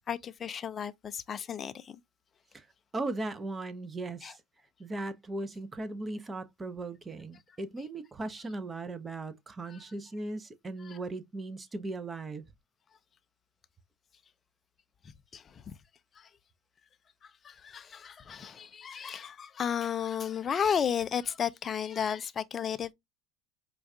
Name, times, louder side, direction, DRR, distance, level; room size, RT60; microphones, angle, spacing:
voice 1, 0.1-2.0 4.2-4.3 9.7-9.8 10.8-11.0 15.0-15.8 16.2-16.3 17.2-22.9, left 8 dB, 35° left, 0.4 m, -34 dB
voice 2, 2.9-4.4 4.8-12.5, right 2 dB, 20° right, 0.6 m, -38 dB
4.5 x 2.3 x 2.7 m
hypercardioid pair, 85°, 0 cm